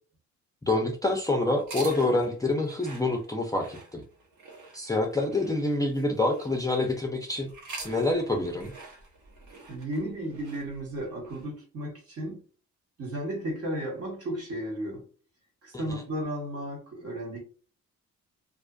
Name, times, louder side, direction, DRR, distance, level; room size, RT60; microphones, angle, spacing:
voice 1, 0.6-4.0 4.7-7.5 7.8-8.7 15.9-16.0, left 2 dB, 10° left, 0.5 m, -27 dB
sound 1, 1.6-6.9 7.4-11.5, right 3 dB, 75° right, 1.0 m, -46 dB
voice 2, 9.7-12.4 13.0-15.0 15.6-17.4, right 1 dB, 55° right, 1.2 m, -34 dB
2.5 x 2.4 x 2.3 m
cardioid pair, 90°, 30 cm